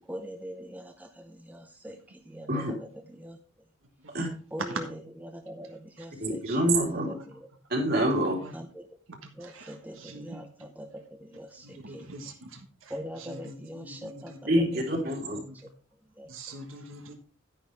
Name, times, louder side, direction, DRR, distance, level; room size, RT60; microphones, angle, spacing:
voice 1, 0.1-3.4 4.5-4.8 5.2-7.5 8.5-8.9 9.4-12.1 12.9-14.7 15.6-15.7 16.2-16.3, equal, 10° right, 5 dB, 0.7 m, -42 dB
voice 2, 6.2-7.1 7.7-8.3 14.5-15.4, right 1 dB, 50° right, 0 dB, 3.3 m, -26 dB
voice 3, 8.2-8.6 9.1-10.4 11.6-14.4 15.3-15.7 16.3-17.1, right 2 dB, 80° right, 4 dB, 1.6 m, -43 dB
10.0 x 9.9 x 3.5 m, 0.39 s
head